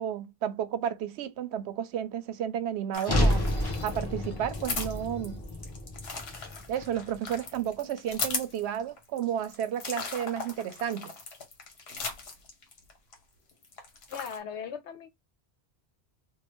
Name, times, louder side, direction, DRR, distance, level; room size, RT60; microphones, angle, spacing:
voice 1, 0.0-5.4 6.7-11.1, right 9 dB, 80° right, 0.8 m, -32 dB
sound 1, 2.9-13.1 13.5-14.4, left 4 dB, 65° left, 1.2 m, -38 dB
sound 2, 3.0-7.3, left 1 dB, 25° left, 0.9 m, -30 dB
voice 2, 14.1-15.1, left 7 dB, 90° left, 1.0 m, -38 dB
3.0 x 2.4 x 3.0 m
omnidirectional pair, 1.1 m